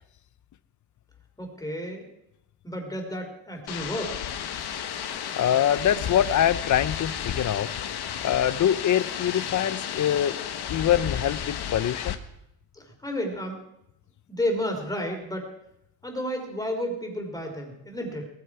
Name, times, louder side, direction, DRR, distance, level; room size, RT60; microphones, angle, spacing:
voice 1, 1.4-2.1 2.6-4.2 12.7-13.6 14.3-15.5 16.0-18.3, equal, 10° left, 2 dB, 3.4 m, -31 dB
sound 1, 3.7-12.2, left 9 dB, 55° left, 1.3 m, -33 dB
voice 2, 5.4-7.7 8.2-10.4 10.7-12.2, left 10 dB, 40° left, 17 dB, 0.6 m, -24 dB
19.0 x 13.5 x 4.8 m, 0.83 s
cardioid pair, 145°, 46 cm